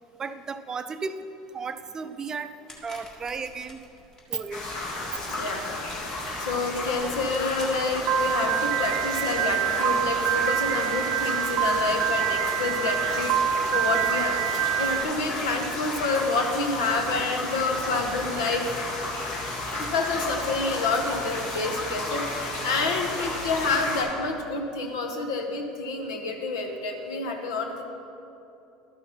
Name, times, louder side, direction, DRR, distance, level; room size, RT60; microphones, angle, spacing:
voice 1, 0.2-1.2 1.5-2.5 2.8-3.8 4.3-4.6, right 5 dB, 30° right, 10 dB, 0.4 m, -34 dB
sound 1, 2.7-8.3, left 1 dB, 30° left, 1.8 m, -49 dB
sound 2, 4.5-24.0, left 2 dB, 60° left, 2.0 m, -33 dB
voice 2, 5.3-5.6 6.4-18.7 19.8-27.8, left 3 dB, 85° left, 3 dB, 1.0 m, -28 dB
Piano, 8.1-15.0, right 10 dB, 65° right, 0.7 m, -26 dB
12.5 x 5.9 x 4.1 m, 2.8 s
supercardioid pair, 90°, 2 cm